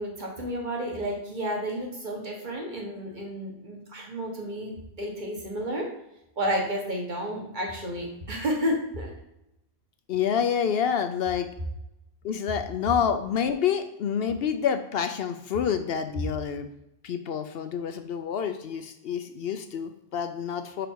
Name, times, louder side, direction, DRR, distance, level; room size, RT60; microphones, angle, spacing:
voice 1, 0.0-4.7 5.0-5.9 6.4-9.1, equal, 45° right, -1 dB, 1.6 m, -31 dB
voice 2, 10.1-11.5 12.2-16.7 17.0-20.9, left 7 dB, 70° left, 8 dB, 0.8 m, -28 dB
5.1 x 5.0 x 4.6 m, 0.85 s
omnidirectional pair, 1.1 m